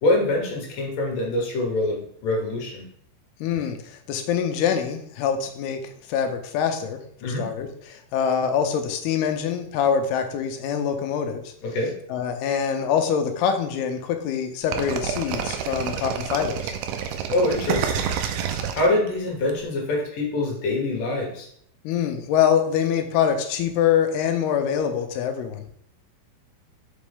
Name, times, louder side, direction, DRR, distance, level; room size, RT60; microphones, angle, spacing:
voice 1, 0.0-2.8 7.2-7.5 11.6-11.9 17.3-18.1 18.7-21.5, left 2 dB, 65° left, -1 dB, 2.7 m, -24 dB
voice 2, 3.4-5.8 6.1-11.4 12.1-16.7 21.8-25.6, left 8 dB, 85° left, 5 dB, 2.7 m, -24 dB
sound 1, 14.7-19.5, right 8 dB, 80° right, 2.5 m, -28 dB
6.1 x 5.3 x 3.5 m, 0.66 s
omnidirectional pair, 4.6 m